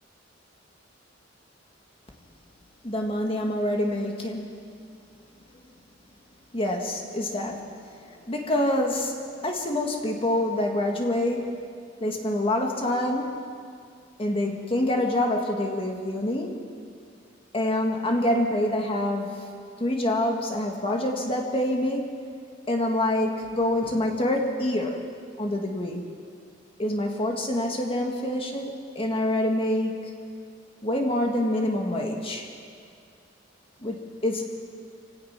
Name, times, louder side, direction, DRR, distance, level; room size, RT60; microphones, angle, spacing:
voice 1, 2.8-4.5 6.5-7.6 8.1-9.2 9.4-11.6 12.0-13.4 14.2-16.6 17.5-19.4 19.8-22.1 22.7-25.1 25.4-26.0 26.8-30.0 30.8-32.5 33.8-34.4, left 1 dB, 30° left, 1 dB, 1.9 m, -26 dB
27.0 x 17.0 x 6.0 m, 2.2 s
head